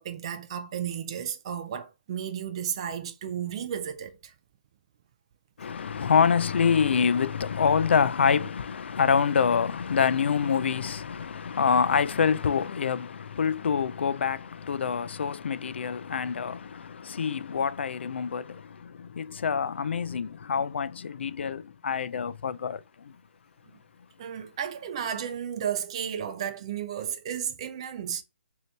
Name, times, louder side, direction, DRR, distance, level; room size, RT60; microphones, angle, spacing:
voice 1, 0.0-4.3 24.2-28.2, right 9 dB, 30° right, 0.3 m, -33 dB
voice 2, 5.6-23.2, left 6 dB, 70° left, 0.4 m, -26 dB
3.9 x 2.8 x 3.2 m
hypercardioid pair, 165°, 6 cm